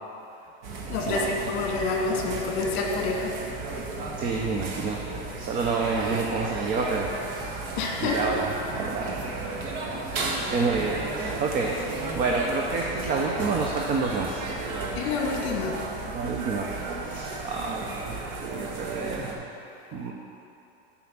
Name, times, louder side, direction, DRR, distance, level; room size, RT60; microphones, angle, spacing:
sound 1, 0.6-19.3, right 3 dB, 60° right, 1.4 m, -34 dB
voice 1, 0.9-3.4 7.8-8.4 10.3-10.5 15.0-15.8, left 3 dB, 55° left, 1 dB, 1.7 m, -28 dB
voice 2, 4.2-5.0 5.4-7.5 8.0-8.5 8.8-9.3 10.5-14.4 16.1-19.4 19.9-20.1, right 4 dB, 25° right, 0 dB, 0.7 m, -29 dB
7.7 x 5.8 x 7.3 m, 2.8 s
supercardioid pair, 150°, 32 cm